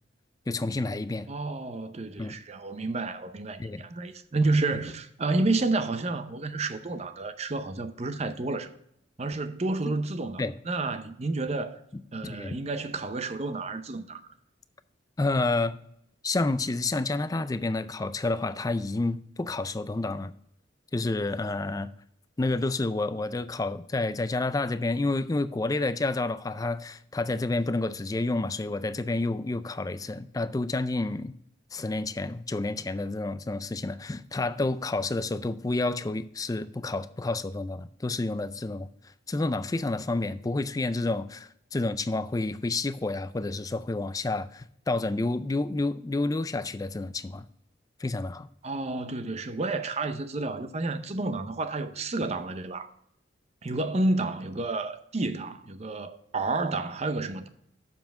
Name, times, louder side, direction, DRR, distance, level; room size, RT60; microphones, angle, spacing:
voice 1, 0.5-1.3 2.2-2.3 3.6-3.8 9.9-10.0 10.4-10.5 12.2-12.6 15.2-15.8 16.2-20.3 20.9-21.9 22.4-31.4 31.7-38.9 39.3-47.5 48.0-48.5, left 2 dB, 20° left, 0.4 m, -29 dB
voice 2, 1.3-8.7 9.2-11.8 12.1-14.3 48.6-52.9 53.6-57.5, right 2 dB, 35° right, 0.6 m, -30 dB
7.1 x 5.7 x 6.3 m
head